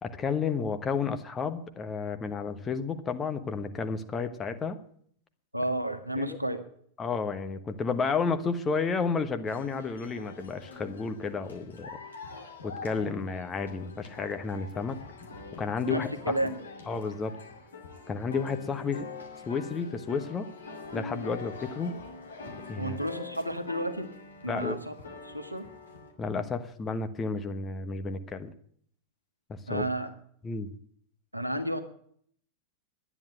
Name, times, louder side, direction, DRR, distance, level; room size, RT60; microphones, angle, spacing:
voice 1, 0.0-4.8 6.2-6.4 7.0-11.9 12.6-15.0 15.6-16.4 16.9-17.3 18.1-19.1 19.5-20.5 20.9-22.0 22.7-23.0 24.5-24.8 26.2-28.5 29.5-29.9 30.4-30.7, left 5 dB, 20° left, 7 dB, 1.2 m, -31 dB
voice 2, 5.5-6.6 15.8-16.6 22.8-24.1 24.4-24.9 25.2-25.7 29.7-30.1 31.3-31.8, right 1 dB, 85° right, 8 dB, 1.3 m, -31 dB
sound 1, 9.5-26.1, left 4 dB, 70° left, 2.2 m, -44 dB
11.0 x 9.8 x 9.0 m, 0.63 s
figure-of-eight pair, 90°, 0 cm